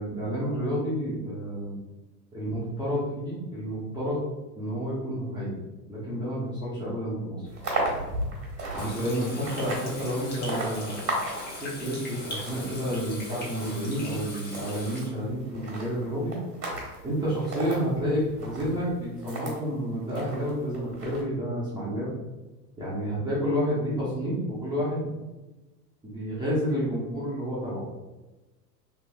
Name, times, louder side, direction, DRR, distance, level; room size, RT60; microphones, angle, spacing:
voice 1, 0.0-1.8 2.3-4.2 4.5-5.5 5.9-7.5 7.9-8.0 8.7-11.0 11.6-16.4 17.0-22.1 22.8-25.1 26.0-27.9, equal, 10° right, -10 dB, 0.8 m, -30 dB
sound 1, 7.4-19.6 20.1-21.2, right 2 dB, 75° right, 1.3 m, -36 dB
Water tap faucet / Sink (filling or washing), 8.8-15.1, left 1 dB, 20° left, 0.9 m, -40 dB
3.1 x 3.1 x 2.2 m, 1.1 s
figure-of-eight pair, 85°, 50 cm